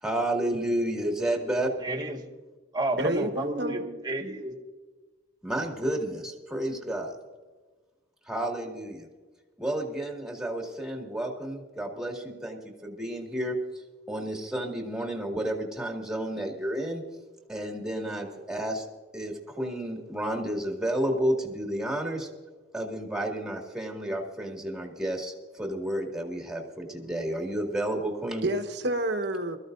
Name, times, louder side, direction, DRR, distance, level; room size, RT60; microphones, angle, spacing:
voice 1, 0.0-1.7 5.4-7.2 8.2-9.1 9.6-17.0 17.5-18.9 19.1-22.3 22.7-28.5, right 1 dB, 5° right, 1 dB, 2.2 m, -31 dB
voice 2, 1.8-2.2 2.7-4.6, right 1 dB, 20° right, 2 dB, 1.7 m, -31 dB
voice 3, 3.0-3.9 28.4-29.6, right 1 dB, 60° right, 6 dB, 1.3 m, -29 dB
23.0 x 14.5 x 2.7 m, 1.3 s
head